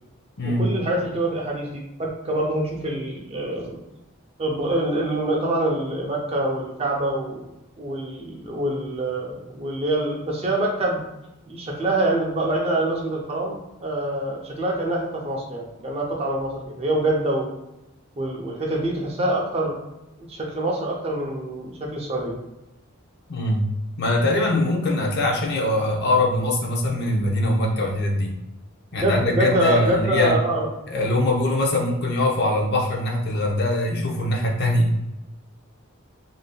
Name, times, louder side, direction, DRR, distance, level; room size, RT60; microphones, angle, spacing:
voice 1, 0.6-3.8 4.4-7.5 7.8-11.0 11.5-17.5 18.2-19.8 20.2-22.3 29.0-30.7, right 1 dB, 30° right, -2 dB, 0.5 m, -25 dB
voice 2, 23.3-23.7 24.0-28.3 28.9-30.4 30.9-34.9, left 1 dB, 50° left, 0 dB, 0.6 m, -22 dB
3.4 x 2.7 x 2.2 m, 0.92 s
head